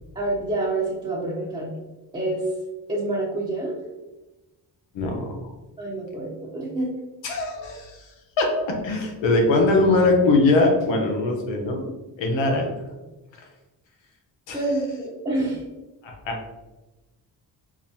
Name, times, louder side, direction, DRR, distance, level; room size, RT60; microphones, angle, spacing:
voice 1, 0.1-1.7 2.1-2.5 2.9-3.8 5.8-6.9 14.5-15.6, right 2 dB, 15° right, -8 dB, 0.9 m, -27 dB
voice 2, 4.9-5.5 7.2-8.1 8.4-11.9 12.2-12.7 14.5-14.6 16.0-16.5, left 2 dB, 85° left, 2 dB, 0.9 m, -21 dB
4.7 x 2.2 x 2.8 m, 1.1 s
cardioid pair, 80°, 43 cm